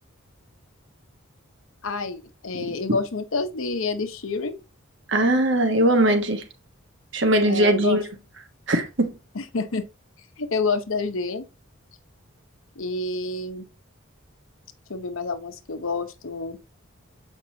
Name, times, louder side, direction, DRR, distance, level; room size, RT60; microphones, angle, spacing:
voice 1, 1.8-4.6 7.4-8.0 9.3-9.8 10.4-11.5 12.8-13.6 14.9-16.6, left 3 dB, 75° left, 0.8 m, -28 dB
voice 2, 5.1-6.4 7.1-8.0 8.7-9.1, right 1 dB, 60° right, 1.3 m, -20 dB
7.7 x 5.3 x 2.8 m
head